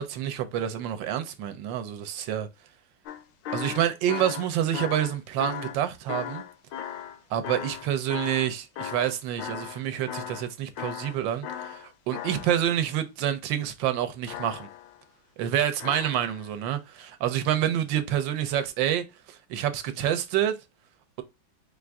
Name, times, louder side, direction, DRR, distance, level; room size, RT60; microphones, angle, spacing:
voice 1, 0.0-2.5 3.5-6.4 7.3-14.7 15.4-20.5, right 10 dB, 75° right, 1.3 m, -28 dB
sound 1, 3.1-9.8 10.1-10.5 10.8-12.9 14.3-15.0 15.8-16.5 17.5-17.6, left 9 dB, 75° left, 1.2 m, -37 dB
4.5 x 2.5 x 3.4 m
omnidirectional pair, 2.1 m